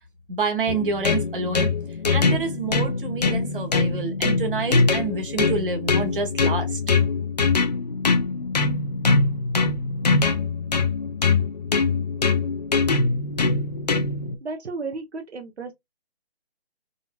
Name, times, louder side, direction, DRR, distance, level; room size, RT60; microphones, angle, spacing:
voice 1, 0.3-1.7 2.1-6.8, right 4 dB, 55° right, 1.4 m, -28 dB
sound 1, 0.7-14.4, left 4 dB, 40° left, 0.5 m, -23 dB
voice 2, 14.4-15.7, right 3 dB, 85° right, 0.9 m, -33 dB
3.7 x 2.7 x 2.3 m
hypercardioid pair, 165°, 32 cm